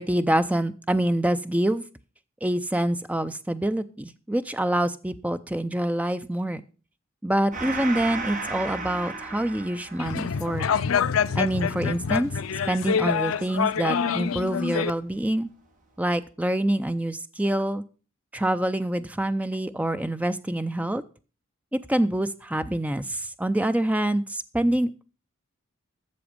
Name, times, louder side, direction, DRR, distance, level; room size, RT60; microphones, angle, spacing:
voice 1, 0.0-1.8 2.4-6.6 7.2-10.6 11.4-12.3 12.7-15.5 16.0-17.8 18.3-21.0 21.7-25.0, right 1 dB, 5° right, 11 dB, 0.5 m, -26 dB
Gong, 7.5-14.5, right 3 dB, 35° right, 1.8 m, -37 dB
sound 1, 10.0-14.9, left 7 dB, 70° left, 0.5 m, -26 dB
13.0 x 7.0 x 5.2 m, 0.36 s
head